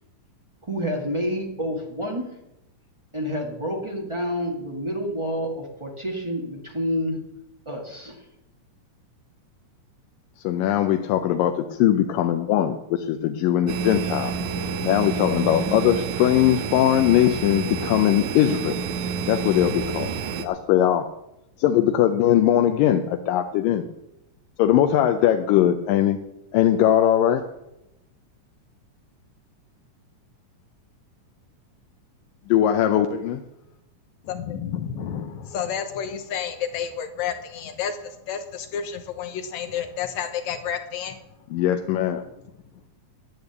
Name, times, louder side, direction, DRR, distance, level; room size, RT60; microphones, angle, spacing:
voice 1, 0.6-2.3 3.1-7.2 7.6-8.3, equal, 55° right, 0 dB, 0.3 m, -28 dB
voice 2, 10.4-14.3 14.8-18.8 19.3-20.1 20.4-21.1 21.6-23.8 24.6-26.2 26.5-27.4 32.5-33.4 41.5-42.2, left 11 dB, 85° left, 6 dB, 2.4 m, -20 dB
sound 1, 13.7-20.5, right 5 dB, 75° right, 2.3 m, -28 dB
voice 3, 34.2-41.2 42.3-42.4, left 8 dB, 70° left, 8 dB, 2.0 m, -30 dB
11.0 x 8.7 x 8.0 m, 0.89 s
omnidirectional pair, 3.8 m